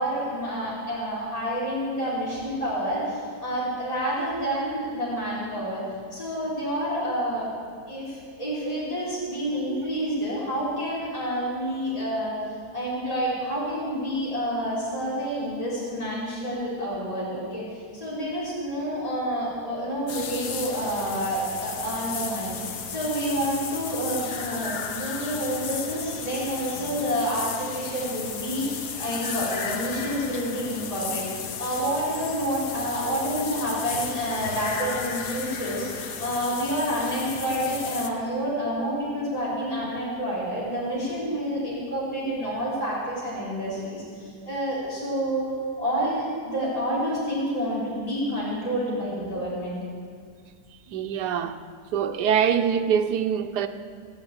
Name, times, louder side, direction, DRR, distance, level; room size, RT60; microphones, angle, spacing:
voice 1, 0.0-5.8 6.1-7.5 7.8-12.4 12.7-17.6 17.9-31.3 31.6-45.5 45.8-49.8, equal, 20° left, -9 dB, 4.1 m, -28 dB
sound 1, 20.1-38.1, left 6 dB, 90° left, 1.6 m, -34 dB
voice 2, 50.9-51.6 51.9-53.7, right 8 dB, 85° right, 7 dB, 1.3 m, -24 dB
17.5 x 7.7 x 8.9 m, 2.1 s
omnidirectional pair, 1.7 m